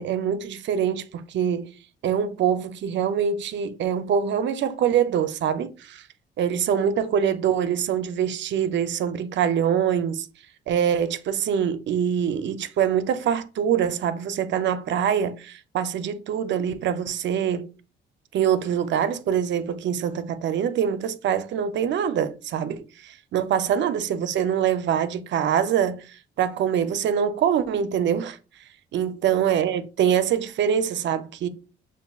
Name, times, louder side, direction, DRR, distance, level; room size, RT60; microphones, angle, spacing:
voice 1, 0.0-1.7 2.0-6.0 6.4-10.3 10.7-17.7 18.3-28.4 28.9-31.5, right 8 dB, 65° right, 0.5 m, -24 dB
6.5 x 2.5 x 2.3 m
cardioid pair, 90°, 20 cm